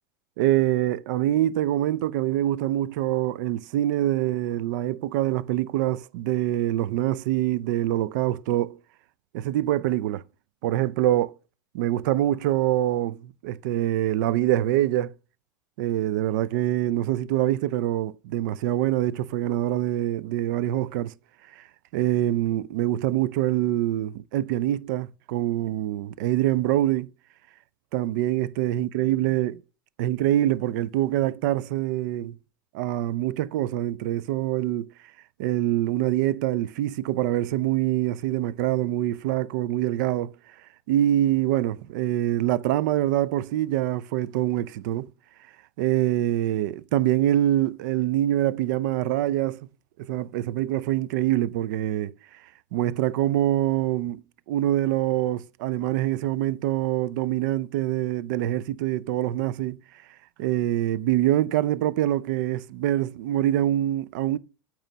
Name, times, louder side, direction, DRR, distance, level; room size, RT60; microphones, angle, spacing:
voice 1, 0.4-8.8 9.3-10.2 10.6-11.4 11.7-15.1 15.8-21.1 21.6-21.7 21.9-27.1 27.9-29.6 30.0-32.4 32.7-34.9 35.4-40.3 40.9-45.1 45.8-49.7 50.0-52.1 52.7-54.2 54.5-59.8 60.4-64.4, right 13 dB, 65° right, 0.4 m, -25 dB
8.9 x 3.1 x 5.6 m
hypercardioid pair, 90°, 11 cm